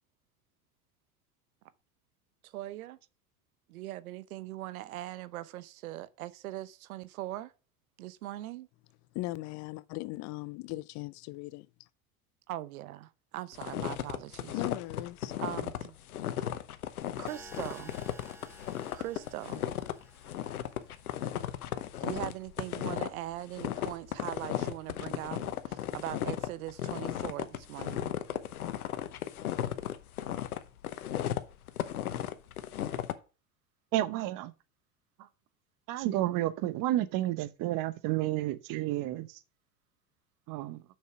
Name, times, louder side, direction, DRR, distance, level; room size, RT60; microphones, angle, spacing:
voice 1, 2.4-3.0 3.7-7.5 8.0-8.7 12.5-14.5 15.4-15.9 17.2-17.9 18.9-19.6 22.0-28.1, right 14 dB, 75° right, 0.9 m, -40 dB
voice 2, 9.1-11.9 14.5-15.3, left 19 dB, 40° left, 0.5 m, -39 dB
sound 1, 13.5-33.1, left 11 dB, 90° left, 1.0 m, -35 dB
sound 2, 17.3-21.3, right 1 dB, 5° right, 1.6 m, -54 dB
voice 3, 33.9-34.5 35.9-39.3 40.5-40.8, right 15 dB, 50° right, 1.0 m, -31 dB
6.7 x 6.3 x 6.0 m
hypercardioid pair, 95°, 43 cm